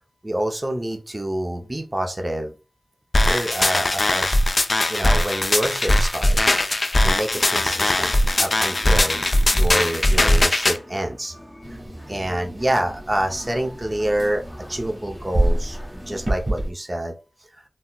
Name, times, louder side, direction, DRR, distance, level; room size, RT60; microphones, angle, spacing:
voice 1, 0.2-2.5 3.3-4.4 4.9-6.5 7.0-11.3 12.1-14.4 14.7-17.1, right 1 dB, 30° right, 3 dB, 0.6 m, -27 dB
sound 1, 3.1-10.8, left 1 dB, 45° left, 0.3 m, -19 dB
sound 2, 7.3-16.4, equal, 10° left, 0.7 m, -42 dB
sound 3, 11.6-16.7, right 1 dB, 45° right, 1.4 m, -28 dB
4.0 x 2.0 x 2.3 m, 0.32 s
cardioid pair, 40°, 0 cm